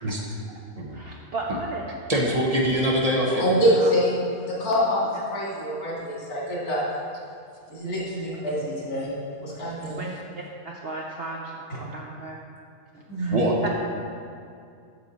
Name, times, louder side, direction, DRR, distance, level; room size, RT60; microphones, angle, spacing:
voice 1, 0.9-1.8 3.2-3.9 9.8-10.2 10.6-11.5 11.8-12.4 12.9-13.4 13.6-13.7, right 3 dB, 55° right, -1 dB, 0.7 m, -35 dB
voice 2, 2.1-3.4 13.3-13.7, equal, 30° right, -2 dB, 0.9 m, -23 dB
voice 3, 3.4-4.2 4.5-6.8 7.7-9.1 9.4-9.9 13.1-13.4, equal, 85° left, -6 dB, 2.8 m, -25 dB
7.8 x 6.6 x 4.1 m, 2.4 s
omnidirectional pair, 1.5 m